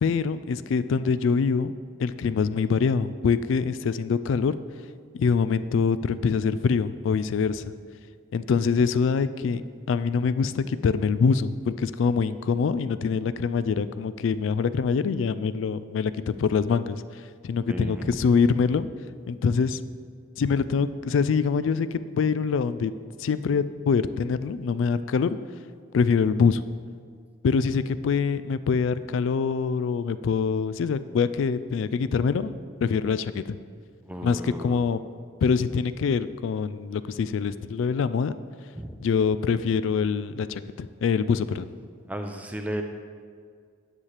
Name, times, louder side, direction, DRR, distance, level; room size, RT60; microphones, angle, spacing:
voice 1, 0.0-1.7 2.0-4.6 5.1-7.6 8.3-9.6 9.9-16.1 16.4-18.9 19.3-19.8 20.4-22.9 23.2-25.4 25.9-26.6 27.4-33.6 34.2-35.0 35.4-38.4 39.0-41.7, left 5 dB, 75° left, 14 dB, 0.3 m, -24 dB
voice 2, 17.7-18.2 34.0-34.8 38.8-39.0 42.1-42.8, right 1 dB, 5° right, 5 dB, 0.5 m, -34 dB
9.7 x 7.3 x 3.3 m, 2.1 s
head